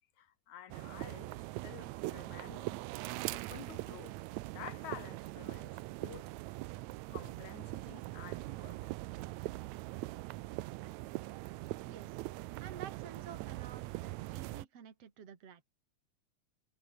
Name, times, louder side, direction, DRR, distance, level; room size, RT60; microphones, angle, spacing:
voice 1, 0.2-2.8 3.3-4.2 4.5-6.6 7.1-9.2, left 10 dB, 80° left, 2.9 m, -51 dB
sound 1, 0.7-14.7, right 19 dB, 80° right, 1.9 m, -42 dB
voice 2, 11.8-12.2 12.6-15.6, right 8 dB, 55° right, 3.6 m, -51 dB
omnidirectional pair, 3.3 m